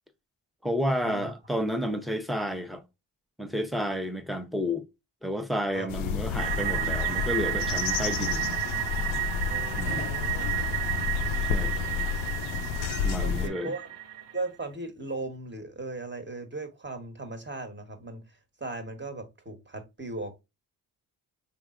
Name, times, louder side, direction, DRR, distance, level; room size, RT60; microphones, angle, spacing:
voice 1, 0.6-2.8 3.4-4.8 5.2-8.5 9.8-10.1 11.5-11.8 13.0-13.7, equal, ahead, 0.7 m, -31 dB
sound 1, 5.9-13.5, left 7 dB, 80° left, 0.6 m, -30 dB
sound 2, 6.4-14.4, right 13 dB, 60° right, 0.9 m, -32 dB
voice 2, 9.5-11.1 12.5-13.9 14.3-18.2 18.6-20.4, right 2 dB, 25° right, 1.2 m, -38 dB
4.2 x 3.5 x 2.4 m
supercardioid pair, 50°, 48 cm